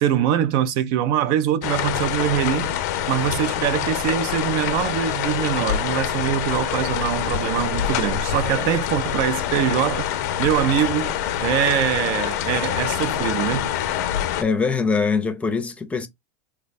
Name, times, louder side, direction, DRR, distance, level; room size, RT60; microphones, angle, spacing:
voice 1, 0.0-2.7 3.1-10.1 10.4-13.7, right 10 dB, 55° right, 0.4 m, -23 dB
sound 1, 1.6-14.4, left 10 dB, 70° left, 0.5 m, -25 dB
voice 2, 14.4-16.1, left 5 dB, 15° left, 0.6 m, -22 dB
3.2 x 2.2 x 4.0 m
supercardioid pair, 130°, 9 cm